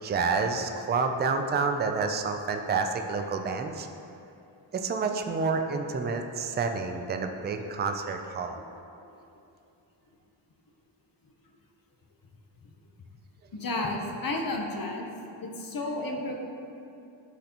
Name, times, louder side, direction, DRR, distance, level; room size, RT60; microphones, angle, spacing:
voice 1, 0.0-3.9 4.7-8.6, right 4 dB, 25° right, 5 dB, 0.4 m, -29 dB
voice 2, 13.5-16.4, left 2 dB, 45° left, 1 dB, 0.9 m, -32 dB
10.0 x 3.9 x 2.9 m, 2.6 s
cardioid pair, 85°, 47 cm